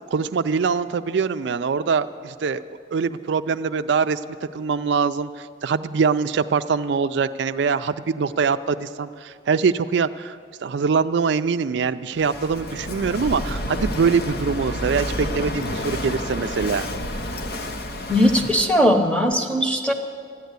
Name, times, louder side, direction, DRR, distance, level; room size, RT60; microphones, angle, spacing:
voice 1, 0.0-2.6 2.9-4.2 4.5-16.9, right 5 dB, 70° right, 10 dB, 0.4 m, -23 dB
Walk footsteps / Wind / Waves surf, 12.2-18.8, left 1 dB, 55° left, 0.7 m, -30 dB
voice 2, 18.1-19.9, equal, 5° left, 3 dB, 0.9 m, -19 dB
14.0 x 10.5 x 8.1 m, 2.3 s
head